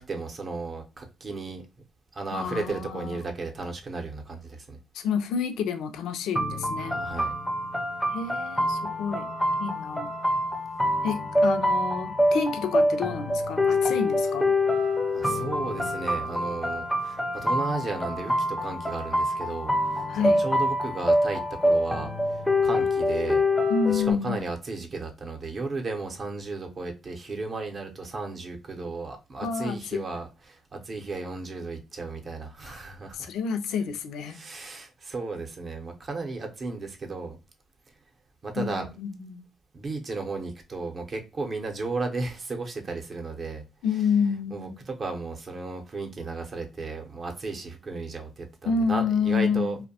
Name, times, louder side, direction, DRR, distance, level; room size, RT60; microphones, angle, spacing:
voice 1, 0.0-1.6 2.1-4.8 6.8-7.3 15.1-23.4 23.9-33.3 34.3-37.4 38.4-38.9 39.7-43.6 44.5-49.8, right 3 dB, 45° right, 0.6 m, -34 dB
voice 2, 2.3-3.3 4.9-7.0 8.1-9.3 9.6-10.1 11.0-14.5 20.1-20.4 23.7-24.5 29.4-30.0 32.6-32.8 33.1-34.4 38.6-39.4 43.8-44.8 48.7-49.7, left 6 dB, 85° left, 0.3 m, -29 dB
sound 1, 6.4-24.1, left 1 dB, 5° left, 0.4 m, -26 dB
2.6 x 2.1 x 2.7 m
cardioid pair, 90°, 0 cm